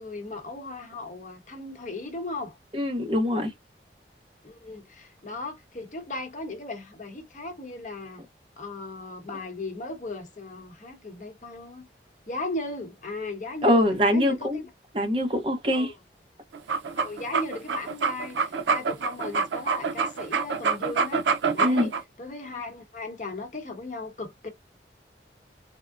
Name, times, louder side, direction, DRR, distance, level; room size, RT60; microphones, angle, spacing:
voice 1, 0.0-2.6 4.4-8.2 8.6-11.9 12.3-13.8 14.1-14.7 15.7-15.9 16.9-24.5, left 2 dB, 45° left, 0.9 m, -37 dB
voice 2, 2.7-3.5 13.6-14.6 14.9-15.9 21.6-21.9, left 1 dB, 30° right, 0.7 m, -23 dB
sound 1, 16.5-22.0, right 5 dB, 85° right, 0.5 m, -26 dB
3.5 x 2.0 x 2.4 m
head